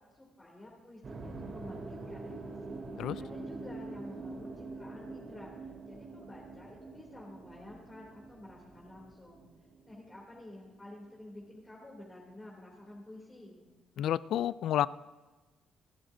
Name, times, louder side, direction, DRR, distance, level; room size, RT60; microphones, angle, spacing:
voice 1, 0.1-2.8 3.2-9.5 9.9-13.6, left 1 dB, 20° left, -3 dB, 2.9 m, -51 dB
sound 1, 1.0-11.2, right 3 dB, 45° right, 2.8 m, -45 dB
voice 2, 14.0-14.9, left 11 dB, 75° left, 18 dB, 0.3 m, -30 dB
27.5 x 11.0 x 2.7 m, 1.2 s
cardioid pair, 90°, 0 cm